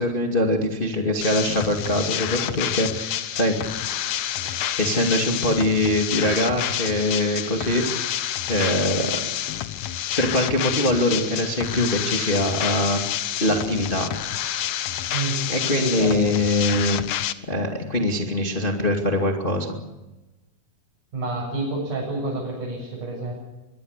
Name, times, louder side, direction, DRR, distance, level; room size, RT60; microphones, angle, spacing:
voice 1, 0.0-3.6 4.4-8.1 8.5-9.2 10.2-13.0 13.4-14.1 15.5-17.0 17.5-19.7, left 1 dB, 20° left, 2 dB, 1.9 m, -23 dB
sound 1, 1.2-17.3, left 11 dB, 85° left, 1.5 m, -28 dB
voice 2, 15.1-16.2 21.1-23.3, right 2 dB, 50° right, -3 dB, 8.7 m, -29 dB
24.0 x 22.5 x 6.7 m, 1.0 s
omnidirectional pair, 4.5 m